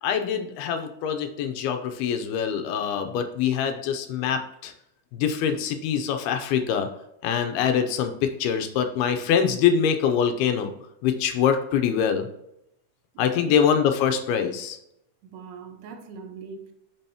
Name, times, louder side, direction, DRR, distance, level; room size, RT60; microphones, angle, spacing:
voice 1, 0.0-4.7 5.1-6.9 7.2-10.7 11.0-12.3 13.2-14.8, left 8 dB, 80° left, 2.5 m, -24 dB
voice 2, 13.1-13.9 15.2-16.7, right 6 dB, 80° right, 2.7 m, -40 dB
8.8 x 6.2 x 2.9 m
omnidirectional pair, 4.7 m